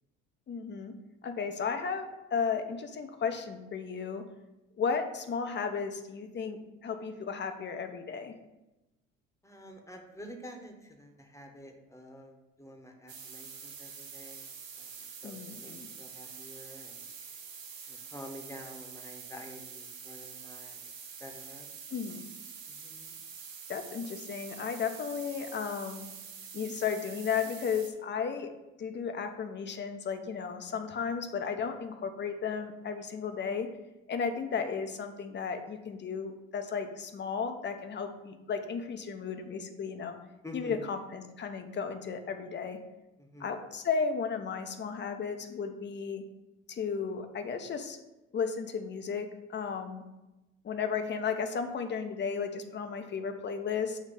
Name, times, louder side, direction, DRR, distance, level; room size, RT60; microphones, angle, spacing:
voice 1, 0.5-1.0 1.2-4.2 4.8-8.3 15.2-15.9 21.9-22.2 23.7-26.1 26.5-28.5 28.8-33.7 34.1-40.2 40.5-42.8 43.4-46.2 46.7-48.0 48.3-50.0 50.6-54.0, left 6 dB, 30° left, 7 dB, 0.8 m, -34 dB
voice 2, 9.4-14.5 14.8-17.1 17.9-20.8 21.2-21.7 22.7-23.2 40.4-40.9 43.2-43.5, equal, 10° left, 2 dB, 1.1 m, -48 dB
sound 1, 13.1-27.9, right 6 dB, 90° right, 0.7 m, -46 dB
7.3 x 3.1 x 5.3 m, 1.0 s
hypercardioid pair, 65°, 38 cm